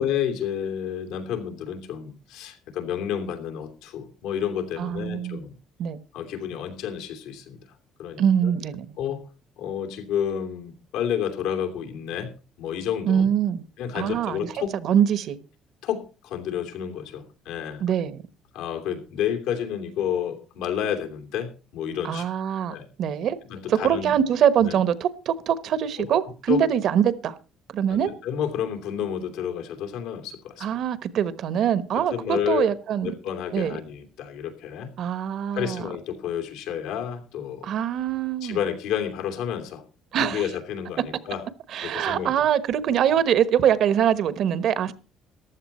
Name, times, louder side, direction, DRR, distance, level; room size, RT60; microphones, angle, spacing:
voice 1, 0.0-5.5 6.1-7.6 8.0-8.5 9.0-9.2 9.6-12.3 12.6-13.3 13.8-14.7 15.8-17.8 18.5-22.3 22.7-22.9 23.5-24.1 24.6-24.8 26.0-26.1 26.5-26.6 27.9-30.7 31.9-32.7 33.0-34.9 35.5-37.7 38.4-39.8 40.2-41.4 41.8-42.3, left 9 dB, 90° left, 3.0 m, -30 dB
voice 2, 4.8-5.5 5.8-6.0 8.2-9.0 13.0-13.6 13.9-15.4 17.8-18.2 22.0-23.4 23.7-27.3 27.7-28.1 30.6-33.1 33.5-33.8 35.0-35.8 37.6-38.6 40.1-40.5 41.7-44.9, right 9 dB, 55° right, 1.1 m, -23 dB
14.5 x 11.5 x 4.3 m
cardioid pair, 140°, 0 cm